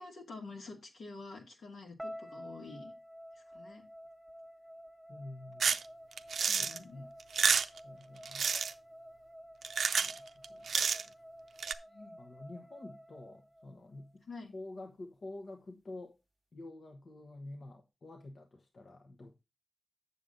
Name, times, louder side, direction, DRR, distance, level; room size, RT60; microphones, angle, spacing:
voice 1, 0.0-2.9 3.3-3.8 6.5-7.1 11.9-12.2 14.3-14.5, left 3 dB, 90° left, 2.3 m, -48 dB
sound 1, 2.0-14.1, equal, ahead, 1.2 m, -51 dB
voice 2, 5.1-5.8 6.6-7.1 7.8-8.4 10.0-10.7 12.2-14.2 14.5-16.2 16.5-19.4, left 2 dB, 65° left, 1.1 m, -48 dB
sound 2, 5.6-5.8 6.2-6.8 7.2-7.8 8.3-8.7 9.6-10.2 10.4-11.1 11.6-11.7, right 6 dB, 85° right, 0.5 m, -29 dB
7.7 x 7.0 x 3.8 m
cardioid pair, 55°, 0 cm